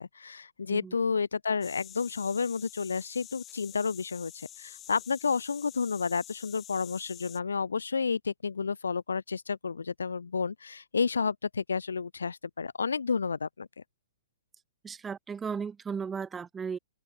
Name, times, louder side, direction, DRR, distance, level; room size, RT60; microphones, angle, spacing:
voice 1, 0.0-13.7, left 5 dB, 80° left, 2.1 m, -31 dB
sound 1, 1.6-7.4, left 12 dB, 25° left, 4.6 m, -48 dB
voice 2, 14.8-16.8, right 6 dB, 15° right, 3.6 m, -35 dB
figure-of-eight pair, 120°, 0 cm